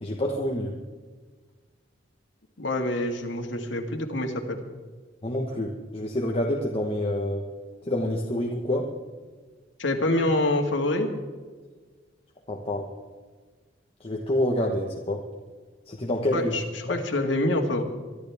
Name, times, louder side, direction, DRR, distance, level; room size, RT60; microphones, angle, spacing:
voice 1, 0.0-0.7 5.2-7.4 7.9-8.9 12.5-12.9 14.0-15.2 15.9-16.5 16.9-17.0, left 1 dB, 30° left, 0 dB, 1.3 m, -27 dB
voice 2, 2.6-4.6 9.8-11.1 16.3-17.8, left 1 dB, 75° left, 2 dB, 2.1 m, -26 dB
24.5 x 12.0 x 3.6 m, 1.4 s
head